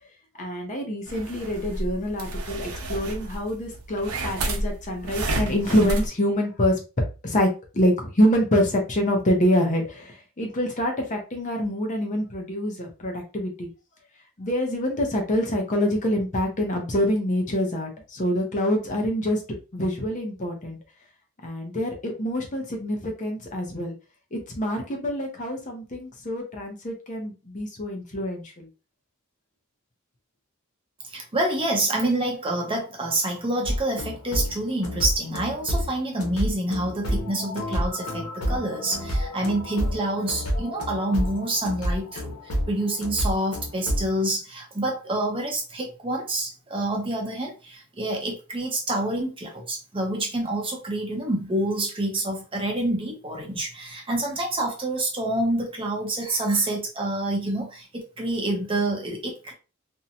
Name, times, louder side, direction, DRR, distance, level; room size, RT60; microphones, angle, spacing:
voice 1, 0.3-6.8 7.2-13.7 14.4-19.4 19.7-20.8 21.4-23.9 24.3-28.7, equal, 35° left, 0.6 m, -26 dB
sound 1, 1.1-6.1, right 1 dB, 85° right, 0.6 m, -31 dB
voice 2, 31.0-59.5, right 1 dB, 25° right, 0.6 m, -27 dB
sound 2, 33.6-44.1, equal, 85° left, 0.8 m, -29 dB
2.6 x 2.1 x 2.7 m
head